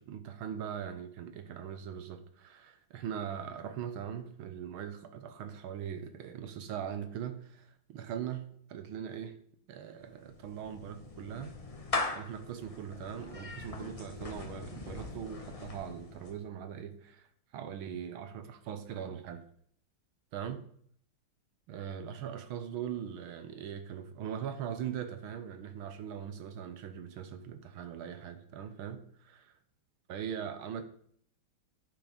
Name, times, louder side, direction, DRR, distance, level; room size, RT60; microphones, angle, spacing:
voice 1, 0.0-9.4 9.7-11.6 12.1-17.3 17.5-19.4 20.3-20.6 21.7-29.5 30.1-30.8, right 8 dB, 80° right, 1.7 m, -41 dB
Clapping / Meow, 10.0-16.5, left 3 dB, 35° left, 0.6 m, -40 dB
9.9 x 6.7 x 5.1 m
omnidirectional pair, 2.3 m